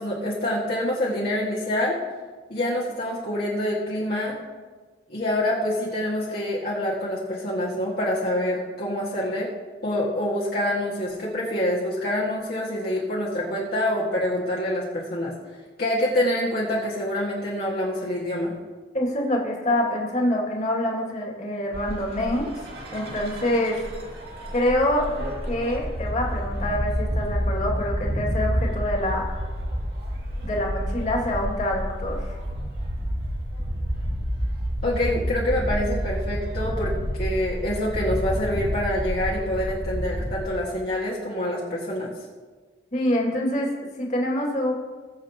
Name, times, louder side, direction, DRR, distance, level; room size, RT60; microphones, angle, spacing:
voice 1, 0.0-2.0 2.5-4.4 5.1-9.5 9.8-15.3 15.8-18.5 34.8-42.1, left 1 dB, 55° left, -6 dB, 1.9 m, -26 dB
voice 2, 18.9-22.5 22.9-23.8 24.5-25.1 25.5-29.4 30.4-32.3 42.9-43.7 44.0-44.7, left 1 dB, 40° left, -1 dB, 2.3 m, -25 dB
sound 1, 21.7-40.5, equal, 60° right, 2.4 m, -29 dB
20.5 x 7.6 x 2.9 m, 1.4 s
head